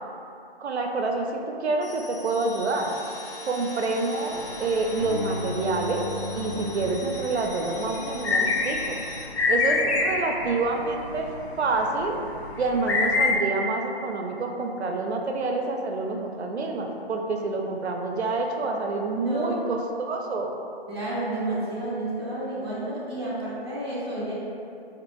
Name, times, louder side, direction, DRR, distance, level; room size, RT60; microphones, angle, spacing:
voice 1, 0.6-2.9 3.5-6.1 6.3-9.0 9.5-11.3 11.6-12.2 12.6-20.6, right 3 dB, 90° right, 2 dB, 0.5 m, -27 dB
sound 1, 1.8-9.3, left 2 dB, 65° left, 0.9 m, -42 dB
sound 2, 2.9-6.8 7.5-7.6, left 1 dB, 35° left, 0.5 m, -37 dB
sound 3, 4.3-13.4, left 3 dB, 80° left, 0.5 m, -29 dB
voice 2, 19.2-19.6 20.9-24.3, right 1 dB, 25° right, -11 dB, 0.5 m, -30 dB
2.6 x 2.4 x 2.9 m, 2.5 s
hypercardioid pair, 175°, 32 cm